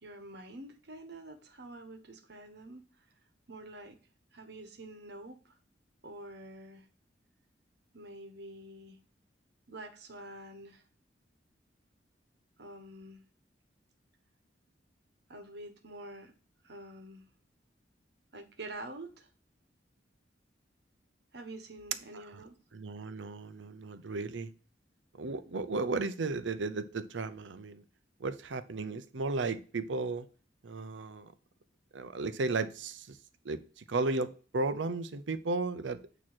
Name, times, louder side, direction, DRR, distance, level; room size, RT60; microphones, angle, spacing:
voice 1, 0.0-2.8 3.5-4.0 4.3-5.5 6.0-6.8 7.9-9.0 9.7-10.8 12.6-13.2 15.3-16.3 16.6-17.2 18.3-19.3 21.3-22.6, right 1 dB, 65° right, 1.2 m, -47 dB
voice 2, 22.7-24.5 25.2-27.8 28.2-30.3 30.6-31.3 31.9-33.2 33.4-36.0, right 3 dB, 85° right, 0.6 m, -34 dB
8.7 x 3.0 x 6.0 m
head